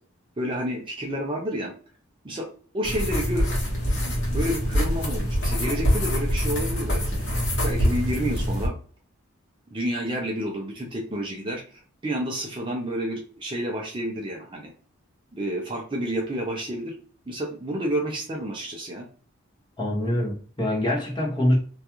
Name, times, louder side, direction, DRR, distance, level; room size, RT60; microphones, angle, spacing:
voice 1, 0.4-1.7 2.2-2.5 2.7-3.5 4.0-8.7 9.7-14.7 15.3-16.9 17.3-19.1, equal, 25° right, 0.4 m, -30 dB
sound 1, 2.8-8.7, equal, 55° left, 1.0 m, -25 dB
voice 2, 19.8-21.6, left 1 dB, 20° left, 0.7 m, -24 dB
2.3 x 2.3 x 2.8 m
head